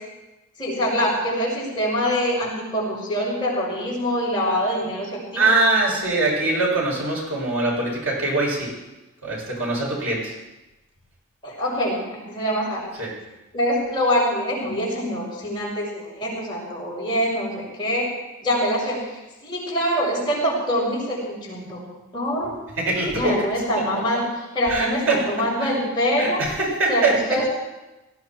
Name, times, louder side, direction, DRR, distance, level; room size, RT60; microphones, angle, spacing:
voice 1, 0.6-5.5 11.4-12.9 13.5-18.1 18.4-19.0 19.4-21.8 22.1-22.5 23.1-24.3 24.5-26.4 26.9-27.5, equal, 20° left, -5 dB, 6.4 m, -24 dB
voice 2, 5.4-8.7 9.2-10.3 13.0-13.1 22.8-23.4 23.7-23.8 24.7-25.2 25.6-25.7 26.2-27.1, right 2 dB, 75° right, -3 dB, 7.5 m, -22 dB
19.0 x 16.0 x 4.7 m, 1.0 s
head